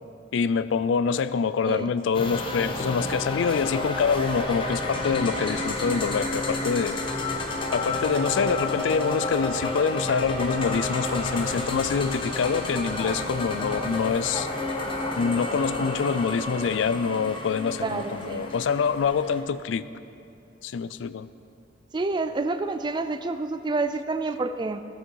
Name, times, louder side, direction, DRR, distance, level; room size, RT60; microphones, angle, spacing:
voice 1, 0.3-7.0 7.7-14.5 15.2-19.9 20.6-21.3, left 6 dB, 75° left, 14 dB, 0.3 m, -25 dB
sound 1, 2.1-19.4, left 2 dB, 25° left, 0.8 m, -30 dB
voice 2, 17.8-18.5 21.9-24.8, right 3 dB, 25° right, 10 dB, 0.3 m, -28 dB
14.5 x 6.5 x 4.6 m, 2.7 s
head